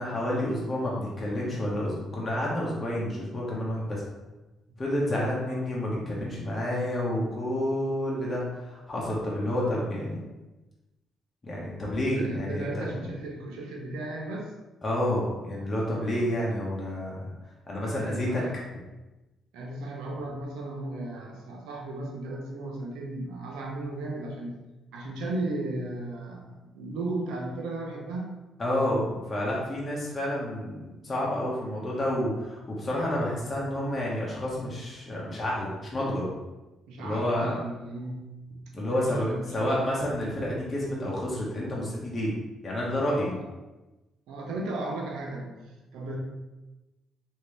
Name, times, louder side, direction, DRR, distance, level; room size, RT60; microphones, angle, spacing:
voice 1, 0.0-4.0 4.8-10.2 11.4-12.9 14.8-17.3 17.7-18.4 28.6-36.3 37.0-37.6 38.7-42.4 42.6-43.4, left 1 dB, 35° left, -5 dB, 1.0 m, -29 dB
voice 2, 5.4-5.8 12.0-14.5 16.1-16.3 18.0-18.6 19.5-24.6 24.9-28.4 36.9-38.4 38.8-39.7 43.4-43.5 44.3-46.2, right 2 dB, 85° right, -1 dB, 0.7 m, -35 dB
3.0 x 2.7 x 3.3 m, 1.1 s
supercardioid pair, 70°, 0 cm